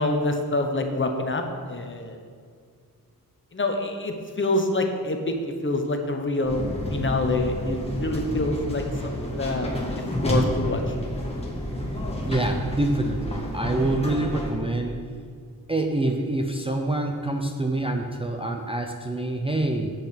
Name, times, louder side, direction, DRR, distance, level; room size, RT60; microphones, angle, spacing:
voice 1, 0.0-2.2 3.5-9.7 10.1-11.0, left 2 dB, 35° left, 4 dB, 0.9 m, -26 dB
sound 1, 6.4-14.5, equal, 15° left, 1.5 m, -29 dB
voice 2, 12.2-15.0 15.7-19.9, right 2 dB, 15° right, 2 dB, 0.5 m, -26 dB
8.2 x 6.9 x 5.8 m, 2.1 s
wide cardioid pair, 155°, 37 cm